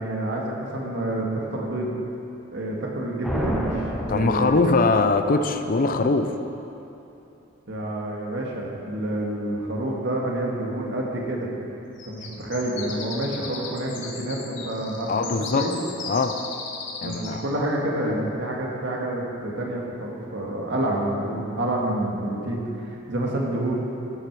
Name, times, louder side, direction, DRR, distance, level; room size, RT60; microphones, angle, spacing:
voice 1, 0.0-1.9 2.5-3.8 4.1-4.7 7.7-11.5 12.0-15.7 17.0-23.8, right 1 dB, 65° right, -2 dB, 1.8 m, -28 dB
sound 1, 3.2-5.2, equal, ahead, 1.0 m, -30 dB
voice 2, 4.1-6.3 15.1-15.7 16.1-16.4 17.0-17.4, left 3 dB, 45° left, 8 dB, 0.5 m, -22 dB
sound 2, 12.0-17.4, left 4 dB, 65° left, 1.3 m, -37 dB
13.5 x 7.7 x 4.8 m, 2.9 s
head